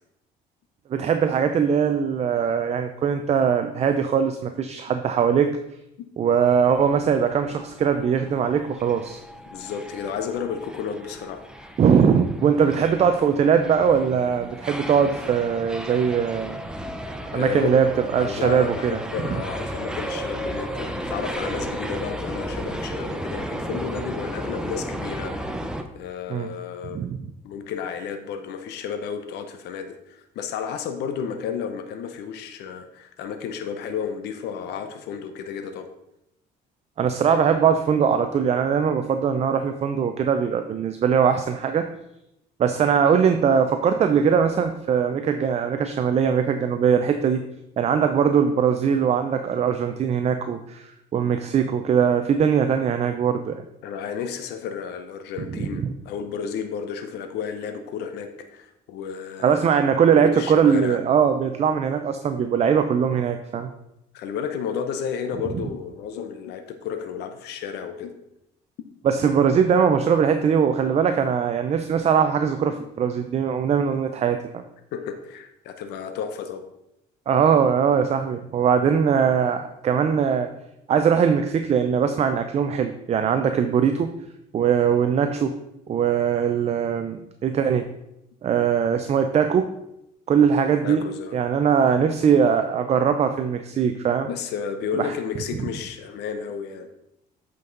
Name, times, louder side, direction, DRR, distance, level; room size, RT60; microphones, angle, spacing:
voice 1, 0.9-5.5 6.2-9.2 11.8-16.6 17.3-17.9 18.1-19.0 26.3-26.5 26.9-27.3 37.0-41.9 42.6-47.4 47.8-53.6 55.6-55.9 59.4-63.7 69.0-74.6 77.3-80.5 80.9-84.1 84.5-85.6 85.9-87.9 88.4-89.7 90.3-91.0 91.3-94.3 95.0-95.1, right 7 dB, 40° right, 7 dB, 0.5 m, -21 dB
sound 1, 6.5-25.8, right 1 dB, 5° right, 0.7 m, -34 dB
voice 2, 9.5-11.7 17.3-17.7 18.2-25.7 25.9-27.1 27.4-35.9 53.8-59.7 60.1-61.0 64.1-68.1 74.9-76.6 90.8-91.4 94.3-96.9, left 7 dB, 80° left, 7 dB, 0.7 m, -32 dB
8.2 x 5.3 x 3.9 m, 0.84 s
cardioid pair, 110°, 17 cm